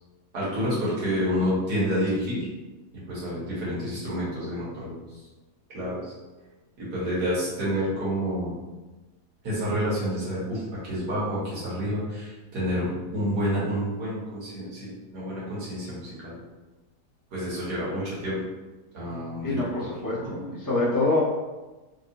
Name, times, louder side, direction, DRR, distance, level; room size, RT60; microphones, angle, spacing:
voice 1, 0.3-2.5 3.1-5.0 5.7-6.1 6.8-8.5 9.4-16.3 17.3-18.4 18.9-19.9 20.2-20.3, equal, 85° right, -8 dB, 1.9 m, -29 dB
voice 2, 19.4-21.2, left 2 dB, 25° left, -8 dB, 0.4 m, -26 dB
3.5 x 2.9 x 2.6 m, 1.2 s
omnidirectional pair, 1.7 m